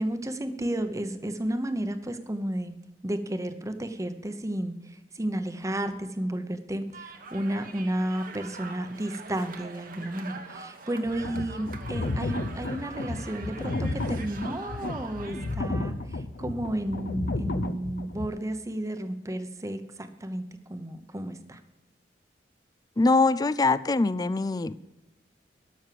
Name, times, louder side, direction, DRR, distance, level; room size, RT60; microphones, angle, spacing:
voice 1, 0.0-2.7 3.0-20.4 20.7-21.6, right 1 dB, 20° right, 9 dB, 0.9 m, -32 dB
sound 1, 6.9-15.6, right 4 dB, 50° right, 1.2 m, -44 dB
sound 2, 11.0-18.3, left 2 dB, 60° left, 0.7 m, -32 dB
voice 2, 23.0-24.7, left 3 dB, 20° left, 16 dB, 0.4 m, -23 dB
12.5 x 6.5 x 7.6 m, 0.99 s
head